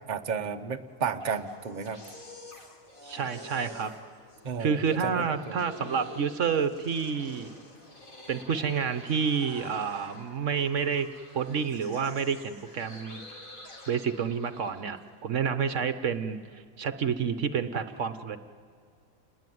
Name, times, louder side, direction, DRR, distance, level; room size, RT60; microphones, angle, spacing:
voice 1, 0.1-2.0 4.4-5.5, right 6 dB, 35° right, 5 dB, 1.1 m, -33 dB
sound 1, 0.9-15.0, left 1 dB, 75° left, 4.0 m, -48 dB
voice 2, 3.0-3.9 4.6-7.5 8.3-11.1 11.3-13.2 13.9-18.4, right 6 dB, 65° right, 11 dB, 1.2 m, -29 dB
28.5 x 20.5 x 9.3 m, 2.1 s
omnidirectional pair, 1.4 m